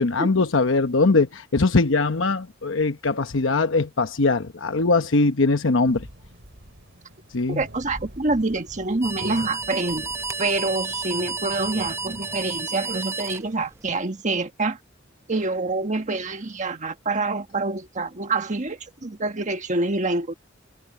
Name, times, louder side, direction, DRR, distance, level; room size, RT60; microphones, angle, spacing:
voice 1, 0.0-6.0 7.3-7.6, left 3 dB, 75° left, 1.0 m, -21 dB
sound 1, 5.8-12.6, equal, 60° right, 4.9 m, -45 dB
voice 2, 7.5-10.1 10.4-14.8 15.3-20.3, right 3 dB, 40° right, 1.4 m, -26 dB
sound 2, 9.0-14.0, right 4 dB, 15° right, 0.8 m, -31 dB
head